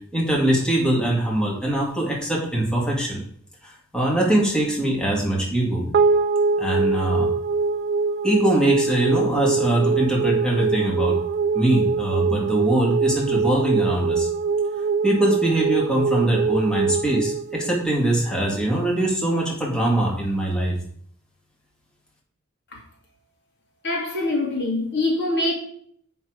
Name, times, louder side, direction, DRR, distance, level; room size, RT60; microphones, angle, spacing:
voice 1, 0.1-3.2 3.6-5.9 6.6-7.3 8.2-11.2 11.5-14.3 15.0-20.8, right 1 dB, 5° left, 2.1 m, -22 dB
sound 1, 5.9-18.5, right 5 dB, 50° right, 0.4 m, -23 dB
voice 2, 23.8-25.5, left 2 dB, 60° left, 2.2 m, -24 dB
7.2 x 5.9 x 4.9 m
head